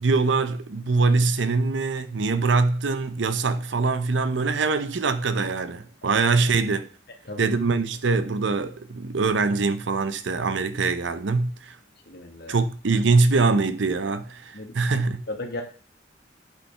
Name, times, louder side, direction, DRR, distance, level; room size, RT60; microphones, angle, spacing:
voice 1, 0.0-6.9 7.4-11.8 12.5-15.2, right 4 dB, 85° right, 0.6 m, -23 dB
voice 2, 12.1-12.6 14.5-14.7 15.3-15.6, left 2 dB, 60° left, 1.5 m, -35 dB
8.5 x 5.5 x 3.3 m
head